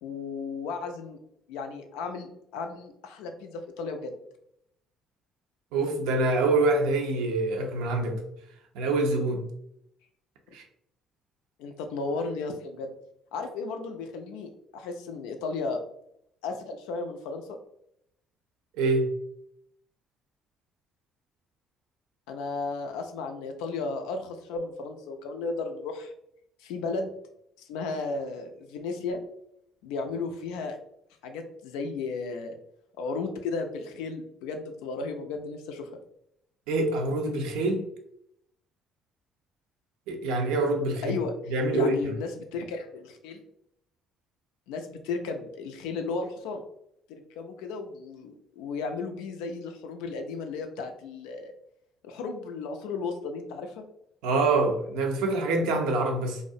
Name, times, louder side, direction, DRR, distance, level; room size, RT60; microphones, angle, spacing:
voice 1, 0.0-1.2 1.5-4.2 11.6-12.9 13.3-15.8 16.4-17.6 22.3-26.1 26.6-27.1 27.6-29.2 29.8-30.8 31.2-32.6 33.0-35.9 41.0-43.4 44.7-46.6 47.1-51.5 52.0-53.8, left 4 dB, 75° left, 0.3 m, -34 dB
voice 2, 5.7-8.2 8.7-9.4 10.5-10.6 18.7-19.1 36.7-37.8 40.1-41.2 41.5-42.1 54.2-56.4, right 2 dB, 75° right, 0.4 m, -25 dB
2.4 x 2.0 x 2.6 m
hypercardioid pair, 55°, 0 cm